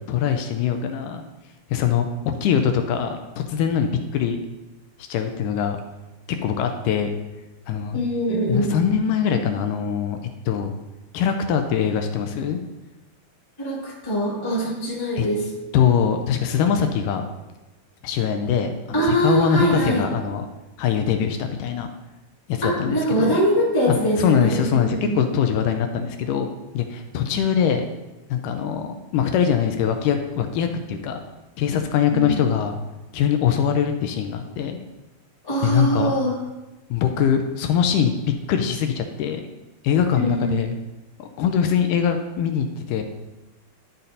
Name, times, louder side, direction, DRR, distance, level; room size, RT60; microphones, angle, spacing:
voice 1, 0.1-1.2 1.7-4.4 5.1-5.8 6.3-7.1 7.7-8.0 8.5-10.2 10.5-10.7 11.1-12.6 15.2-15.3 15.7-17.2 18.0-20.5 20.8-21.9 22.5-23.4 23.9-26.5 26.7-27.9 28.3-31.2 31.6-32.8 33.1-34.8 35.6-36.1 36.9-38.1 38.5-39.4 39.8-40.8 41.2-43.0, left 8 dB, 80° left, 6 dB, 1.9 m, -22 dB
voice 2, 7.9-8.7 13.6-15.4 18.9-20.0 22.6-25.2 32.1-32.4 35.4-36.3 40.1-40.7, right 1 dB, 10° left, -8 dB, 1.2 m, -23 dB
11.5 x 4.2 x 4.0 m, 1.0 s
omnidirectional pair, 4.2 m